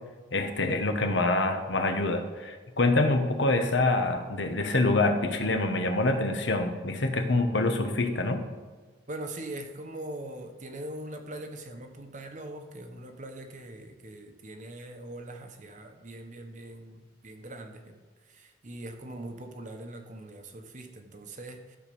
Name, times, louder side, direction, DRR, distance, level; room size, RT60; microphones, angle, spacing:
voice 1, 0.3-8.4, left 2 dB, 75° left, 6 dB, 1.1 m, -26 dB
voice 2, 9.1-18.0 18.3-21.8, right 1 dB, 40° right, 5 dB, 1.0 m, -42 dB
12.5 x 4.5 x 6.9 m, 1.4 s
head